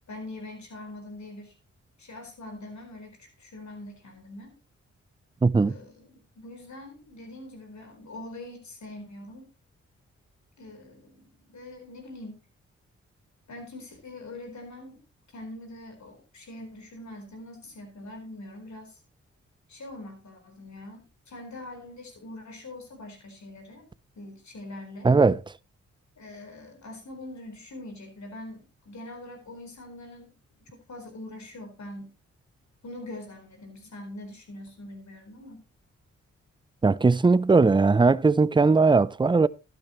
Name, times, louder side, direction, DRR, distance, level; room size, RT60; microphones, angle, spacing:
voice 1, 0.1-1.5 2.0-4.6 5.6-9.5 10.6-12.4 13.5-15.0 15.3-19.0 19.7-23.9 24.2-25.1 26.2-30.3 30.7-32.2 32.8-35.6, left 1 dB, 65° left, 4.3 m, -43 dB
voice 2, 5.4-5.7 25.0-25.4 36.8-39.5, right 4 dB, 15° right, 0.5 m, -19 dB
12.0 x 11.0 x 3.1 m
supercardioid pair, 40°, 31 cm